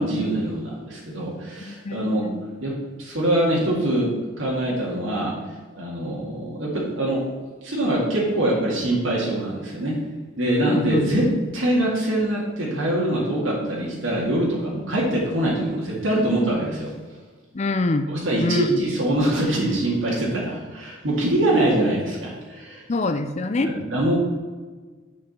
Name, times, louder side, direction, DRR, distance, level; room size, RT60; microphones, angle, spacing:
voice 1, 0.0-2.3 2.6-5.3 5.8-7.2 7.6-10.0 10.4-16.9 18.1-22.8 23.6-24.2, right 1 dB, 80° right, -4 dB, 2.1 m, -24 dB
voice 2, 1.6-2.4 10.7-11.1 17.5-18.1 18.4-18.8 22.9-23.7, left 2 dB, 35° left, 8 dB, 0.5 m, -25 dB
6.9 x 5.2 x 5.7 m, 1.4 s
head